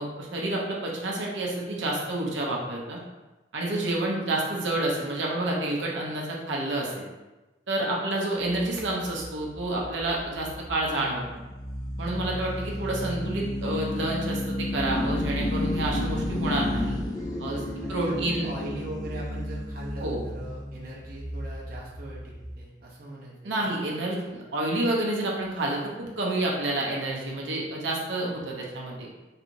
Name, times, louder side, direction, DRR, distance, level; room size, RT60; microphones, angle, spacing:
voice 1, 0.0-3.0 3.5-7.0 7.7-11.2 12.0-17.0 17.4-17.6 17.9-18.5 20.0-20.2 23.4-29.1, right 1 dB, 90° right, -2 dB, 0.7 m, -29 dB
sound 1, 8.4-22.6, left 1 dB, 20° left, 0.5 m, -32 dB
voice 2, 17.8-23.7, right 1 dB, 50° right, -4 dB, 0.6 m, -40 dB
3.2 x 2.9 x 2.6 m, 1.1 s
head